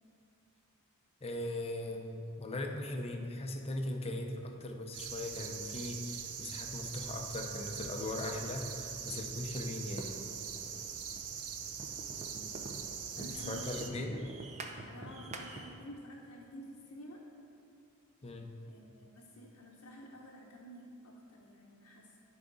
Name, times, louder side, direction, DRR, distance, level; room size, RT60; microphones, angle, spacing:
voice 1, 1.2-10.2 13.2-14.2 18.2-18.5, left 1 dB, 30° left, 3 dB, 0.6 m, -39 dB
sound 1, 4.9-13.9, right 7 dB, 85° right, 0.5 m, -42 dB
sound 2, 10.0-15.9, right 2 dB, 30° right, 0.5 m, -48 dB
voice 2, 12.3-12.7 13.2-14.3 14.9-17.2 18.6-22.2, equal, 70° left, -4 dB, 0.8 m, -51 dB
10.5 x 4.9 x 3.9 m, 2.6 s
head